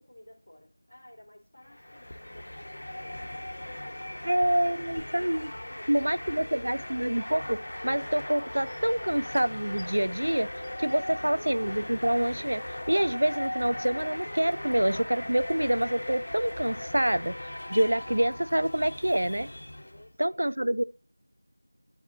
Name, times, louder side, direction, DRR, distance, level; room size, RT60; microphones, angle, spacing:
voice 1, 0.0-4.5 5.3-6.7 19.7-20.5, left 1 dB, 35° left, 2.9 m, -53 dB
sound 1, 1.6-20.1, left 1 dB, 55° left, 0.9 m, -38 dB
voice 2, 4.2-5.5 5.9-10.5 10.8-17.3 17.7-19.5 20.2-20.8, right 1 dB, 70° right, 0.5 m, -27 dB
12.5 x 4.7 x 2.6 m
figure-of-eight pair, 175°, 0 cm